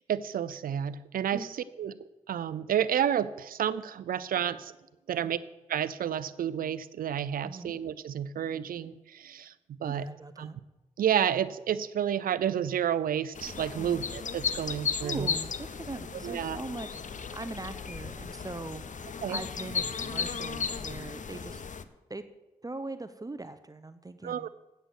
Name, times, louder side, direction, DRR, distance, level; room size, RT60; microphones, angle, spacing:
voice 1, 0.0-1.5 1.8-1.9 2.3-4.7 5.1-5.4 5.7-10.1 10.4-10.5 11.0-15.3 16.2-16.6 19.2-19.4 24.2-24.5, right 9 dB, 90° right, 17 dB, 0.4 m, -30 dB
voice 2, 7.4-7.8 9.8-10.6 13.7-14.0 15.0-21.6 22.1-22.2 22.6-24.5, right 2 dB, 25° right, 11 dB, 0.7 m, -41 dB
sound 1, 13.4-21.8, left 6 dB, 60° left, 0.7 m, -35 dB
sound 2, 15.3-21.7, right 3 dB, 45° right, 2.1 m, -56 dB
8.1 x 7.7 x 8.1 m, 1.0 s
cardioid pair, 45°, 14 cm